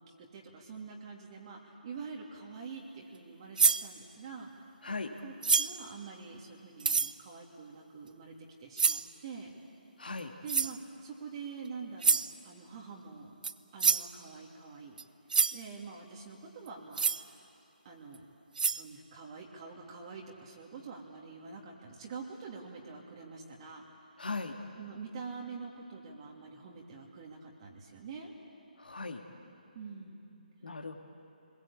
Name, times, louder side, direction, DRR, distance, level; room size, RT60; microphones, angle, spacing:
voice 1, 0.0-4.5 5.2-8.3 8.6-9.5 10.4-13.3 13.7-15.0 15.5-17.4 17.8-18.2 18.7-23.8 24.8-28.3 29.7-30.3, right 5 dB, 35° right, -1 dB, 2.8 m, -46 dB
sound 1, 3.6-3.9 5.4-5.8 6.8-7.1 8.8-9.1 10.5-10.8 12.0-12.3 13.4-13.5 13.8-14.1 15.0-15.1 15.3-15.6 16.9-17.2 18.1-18.2 18.6-18.8, right 5 dB, 60° right, 0.8 m, -27 dB
voice 2, 10.0-10.3 24.2-24.5 28.8-29.2 30.6-30.9, left 3 dB, 75° left, 3 dB, 2.0 m, -38 dB
28.0 x 21.5 x 8.6 m, 2.7 s
figure-of-eight pair, 145°, 5 cm